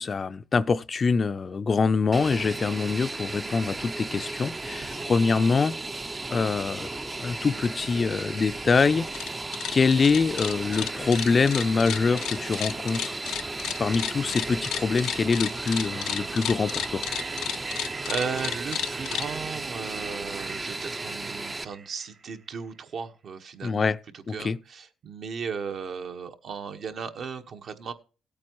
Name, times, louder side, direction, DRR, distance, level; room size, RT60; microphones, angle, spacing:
voice 1, 0.0-5.7 6.3-9.4 9.7-13.2 13.8-17.0 23.6-24.0 24.3-24.6, left 4 dB, 40° left, 0.5 m, -25 dB
Fixed-wing aircraft airplane, 2.1-21.6, right 2 dB, 20° right, 0.6 m, -35 dB
voice 2, 4.7-5.0 18.1-27.9, right 6 dB, 60° right, 1.3 m, -36 dB
sound 1, 9.0-9.3 9.5-19.3, left 11 dB, 85° left, 0.5 m, -32 dB
sound 2, 9.7-22.7, right 4 dB, 40° right, 1.4 m, -44 dB
17.0 x 8.6 x 3.1 m
cardioid pair, 90°, 0 cm